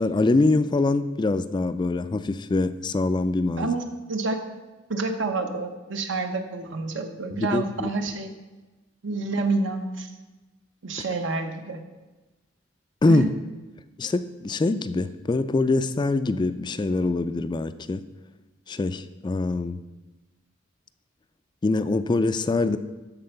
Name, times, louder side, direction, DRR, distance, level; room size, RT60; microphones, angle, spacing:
voice 1, 0.0-3.8 7.3-7.9 13.0-13.4 14.0-18.1 18.7-19.8 21.6-22.8, left 2 dB, 25° left, 12 dB, 0.3 m, -24 dB
voice 2, 4.9-8.3 9.0-10.1 10.8-11.8 13.1-13.3, right 3 dB, 75° right, 6 dB, 1.0 m, -28 dB
13.0 x 4.4 x 5.8 m, 1.2 s
head